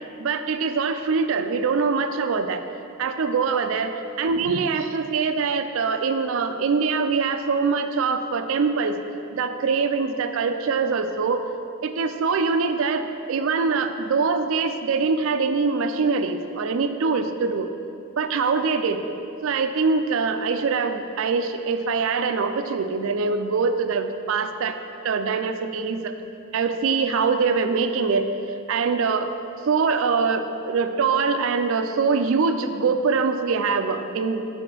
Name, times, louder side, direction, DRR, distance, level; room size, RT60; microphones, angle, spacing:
voice 1, 0.2-2.6 3.0-9.0 9.3-11.4 11.8-17.7 18.2-19.0 19.4-24.8 25.0-26.1 26.5-28.3 28.7-29.3 29.7-34.5, right 5 dB, 65° right, 8 dB, 0.4 m, -23 dB
4.9 x 4.3 x 6.0 m, 2.7 s
head